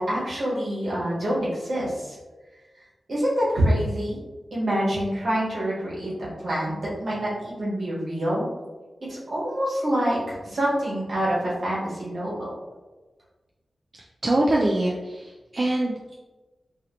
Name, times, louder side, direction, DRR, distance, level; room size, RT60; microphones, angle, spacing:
voice 1, 0.0-2.2 3.1-4.2 4.5-8.4 9.1-12.5, equal, 60° right, -7 dB, 1.3 m, -26 dB
voice 2, 14.2-16.1, right 1 dB, 40° right, -2 dB, 0.3 m, -24 dB
2.8 x 2.7 x 2.9 m, 1.2 s
wide cardioid pair, 115°, 0 cm